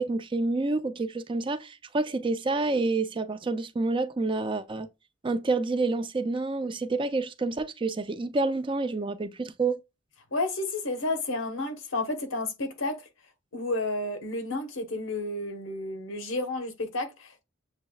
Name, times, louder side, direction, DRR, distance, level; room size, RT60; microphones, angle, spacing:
voice 1, 0.0-4.9 5.2-9.8, right 3 dB, 25° right, 0.4 m, -28 dB
voice 2, 10.3-13.0 13.5-17.4, left 2 dB, 80° left, 1.1 m, -31 dB
7.3 x 3.0 x 2.3 m
head